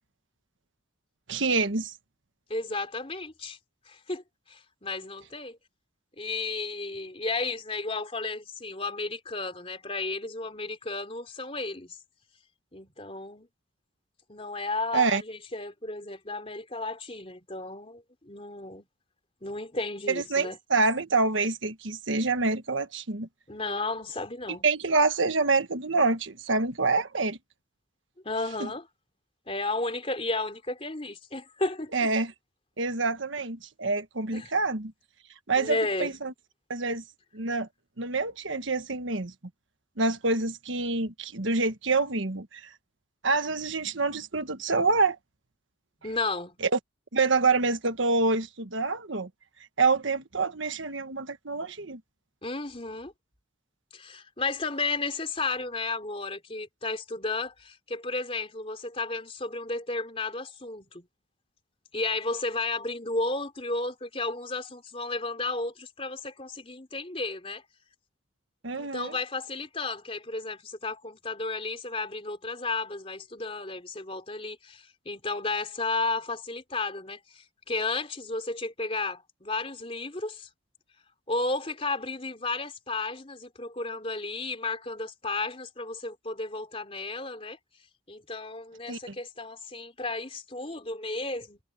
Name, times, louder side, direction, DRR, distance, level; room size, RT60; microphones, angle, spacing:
voice 1, 1.3-1.9 14.9-15.2 20.1-23.3 24.6-27.4 28.6-28.7 31.9-32.3 32.8-34.9 35.5-36.3 36.7-37.0 37.3-37.7 38.0-39.3 40.0-42.7 43.2-45.2 46.6-46.8 47.1-49.3 49.8-52.0 68.6-69.2 88.9-89.1, right 3 dB, 70° right, 1.4 m, -26 dB
voice 2, 2.5-3.6 3.9-5.6 6.2-12.0 12.7-13.5 14.3-18.8 19.4-20.6 23.5-24.6 28.2-28.9 29.5-31.9 34.3-34.5 35.6-36.1 46.0-46.6 52.4-53.1 53.9-61.1 61.9-67.6 68.7-80.5 81.3-87.6 88.1-91.6, left 3 dB, 30° left, 3.5 m, -33 dB
head